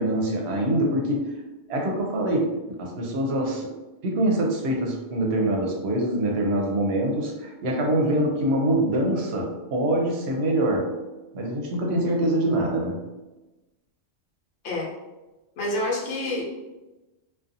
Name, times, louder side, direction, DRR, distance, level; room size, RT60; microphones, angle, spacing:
voice 1, 0.0-1.3 1.7-3.7 4.0-10.9 11.3-13.0, right 1 dB, 70° right, 0 dB, 0.8 m, -24 dB
voice 2, 15.6-16.6, left 1 dB, 65° left, -2 dB, 0.9 m, -28 dB
2.6 x 2.3 x 2.5 m, 1.1 s
omnidirectional pair, 1.2 m